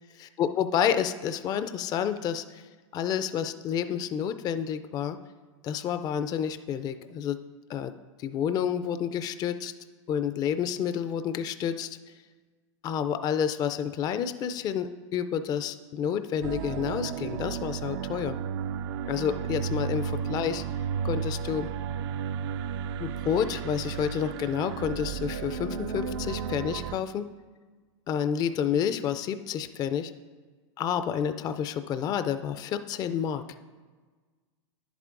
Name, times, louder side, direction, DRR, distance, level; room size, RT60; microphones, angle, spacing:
voice 1, 0.1-2.7 2.9-5.2 5.6-7.4 7.7-7.9 8.2-9.7 10.1-12.0 12.8-18.4 19.1-20.6 21.0-21.7 23.0-27.3 28.1-30.1 30.8-33.4, left 8 dB, 25° left, 10 dB, 0.3 m, -29 dB
sound 1, 16.4-27.0, right 7 dB, 65° right, 0.4 m, -33 dB
10.5 x 8.2 x 2.5 m, 1.4 s
hypercardioid pair, 115°, 16 cm